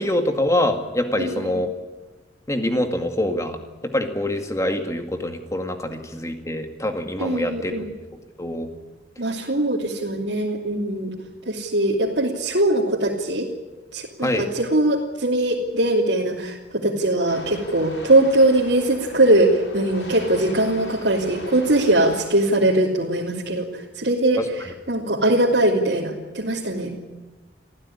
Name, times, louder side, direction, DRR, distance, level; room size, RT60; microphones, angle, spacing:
voice 1, 0.0-1.7 2.5-3.6 3.8-7.9 8.4-8.7 14.2-14.5 24.4-24.5, left 1 dB, 15° left, 5 dB, 2.2 m, -25 dB
voice 2, 1.2-1.6 7.2-7.9 9.2-11.1 11.5-13.5 13.9-26.9, right 1 dB, 85° right, -4 dB, 2.8 m, -21 dB
sound 1, 17.3-22.3, left 1 dB, 80° left, 7.1 m, -40 dB
25.5 x 15.5 x 10.0 m, 1.2 s
head